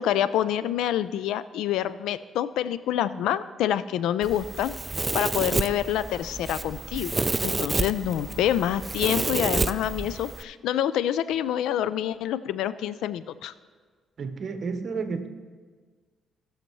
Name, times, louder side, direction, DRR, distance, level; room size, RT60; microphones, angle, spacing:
voice 1, 0.0-4.7 5.1-13.5, left 11 dB, 85° left, 15 dB, 0.3 m, -27 dB
Domestic sounds home sounds, 4.2-10.4, right 3 dB, 25° right, 0.4 m, -29 dB
voice 2, 14.2-15.3, right 4 dB, 55° right, 7 dB, 1.0 m, -31 dB
18.0 x 6.5 x 3.1 m, 1.5 s
cardioid pair, 90°, 0 cm